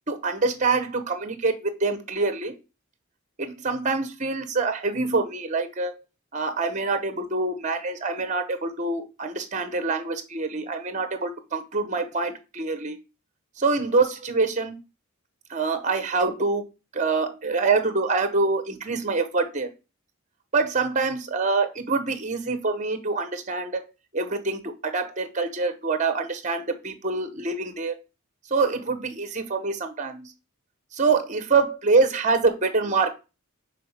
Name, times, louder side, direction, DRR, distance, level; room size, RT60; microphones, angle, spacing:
voice 1, 0.1-2.6 3.4-5.9 6.3-13.0 13.6-14.8 15.5-16.6 16.9-19.7 20.5-23.8 24.1-27.9 28.5-30.3 30.9-33.1, right 4 dB, 35° right, 9 dB, 0.9 m, -25 dB
5.5 x 4.1 x 5.5 m, 0.30 s
head